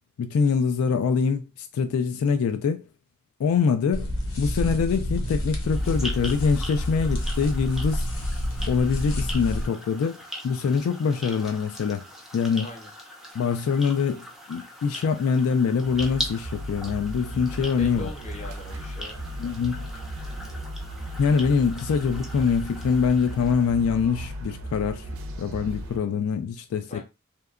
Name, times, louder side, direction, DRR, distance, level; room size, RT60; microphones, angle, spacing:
voice 1, 0.2-2.8 3.4-4.1 4.4-8.0 8.7-12.0 12.3-12.7 13.3-18.1 19.4-19.8 21.2-25.0 25.4-27.0, left 6 dB, 85° left, 0.3 m, -24 dB
sound 1, 3.9-9.7, equal, 65° left, 0.7 m, -28 dB
sound 2, 5.6-24.1, equal, ahead, 0.4 m, -41 dB
voice 2, 12.6-12.9 17.6-19.2 26.9-27.0, left 1 dB, 30° left, 0.7 m, -40 dB
sound 3, 15.8-26.0, right 1 dB, 65° right, 0.5 m, -36 dB
2.7 x 2.1 x 2.4 m
head